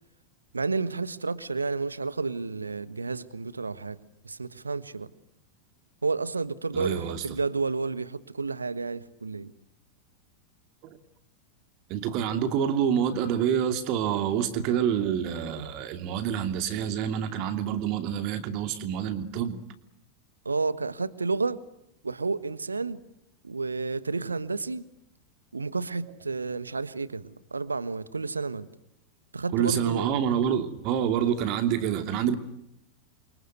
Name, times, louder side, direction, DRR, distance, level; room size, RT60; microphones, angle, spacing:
voice 1, 0.5-4.0 4.2-5.1 6.0-9.5 20.4-21.6 22.0-23.0 23.4-24.9 25.5-28.7 29.3-30.1, right 4 dB, 80° right, 16 dB, 1.4 m, -31 dB
voice 2, 6.7-7.2 10.8-11.0 11.9-19.6 29.5-32.4, right 9 dB, 40° right, 8 dB, 2.9 m, -27 dB
29.5 x 25.0 x 8.1 m, 0.80 s
figure-of-eight pair, 90°, 0 cm